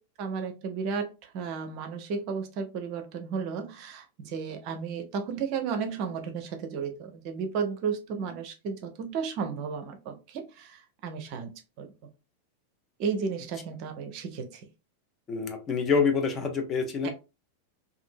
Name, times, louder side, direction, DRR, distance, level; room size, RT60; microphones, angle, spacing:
voice 1, 0.2-11.9 13.0-14.7 17.0-17.1, right 6 dB, 45° right, 0.6 m, -33 dB
voice 2, 15.3-17.1, left 5 dB, 25° left, 0.6 m, -26 dB
2.7 x 2.6 x 2.5 m
figure-of-eight pair, 90°, 0 cm